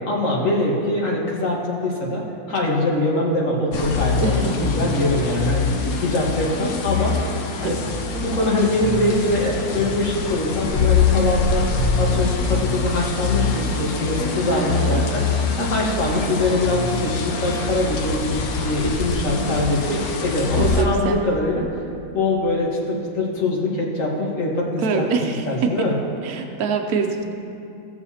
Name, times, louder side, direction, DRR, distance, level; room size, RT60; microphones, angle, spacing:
voice 1, 0.0-2.2 2.5-5.7 6.0-7.2 7.6-7.8 8.2-11.7 12.0-15.2 15.6-21.6 22.1-25.0 25.5-25.9, left 2 dB, 55° left, -3 dB, 1.8 m, -23 dB
sound 1, 3.7-20.8, left 5 dB, 75° left, 1.2 m, -24 dB
voice 2, 4.2-4.7 7.6-7.8 14.4-15.0 20.6-21.2 24.8-25.9 26.2-27.4, right 5 dB, 75° right, 3 dB, 1.2 m, -24 dB
17.5 x 7.3 x 2.8 m, 2.6 s
omnidirectional pair, 1.6 m